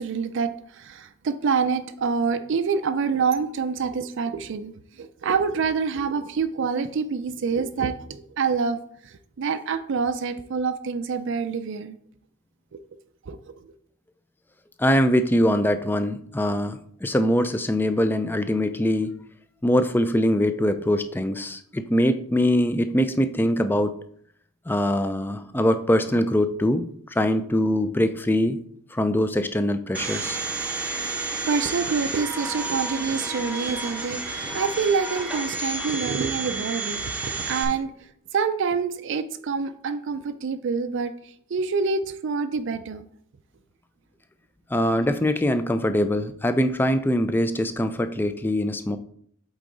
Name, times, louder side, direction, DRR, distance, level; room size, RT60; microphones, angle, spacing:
voice 1, 0.0-4.7 5.0-12.0 12.7-12.8 13.2-13.7 30.9-31.2 31.4-43.0, right 5 dB, 55° right, 10 dB, 0.4 m, -27 dB
voice 2, 14.8-19.2 19.6-23.9 24.7-28.6 28.9-30.4 44.7-49.0, left 1 dB, 10° left, 10 dB, 0.3 m, -23 dB
Domestic sounds home sounds, 29.9-37.6, right 3 dB, 5° right, 0.8 m, -31 dB
8.2 x 3.9 x 3.9 m, 0.65 s
head